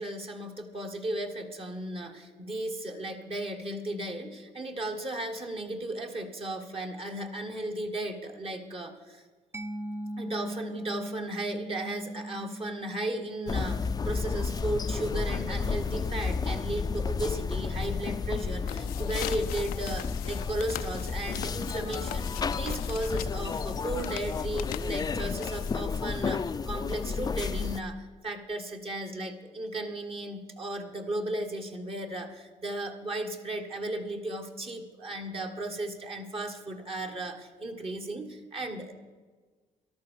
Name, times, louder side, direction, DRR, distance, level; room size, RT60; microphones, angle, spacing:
voice 1, 0.0-9.2 10.2-38.9, right 1 dB, 40° right, 3 dB, 1.7 m, -35 dB
Mallet percussion, 9.5-16.9, right 1 dB, 15° right, 0.5 m, -41 dB
sound 1, 13.5-27.8, left 5 dB, 25° left, 0.5 m, -32 dB
sound 2, 18.6-26.0, left 14 dB, 85° left, 0.5 m, -41 dB
13.5 x 11.5 x 6.5 m, 1.4 s
cardioid pair, 85°, 15 cm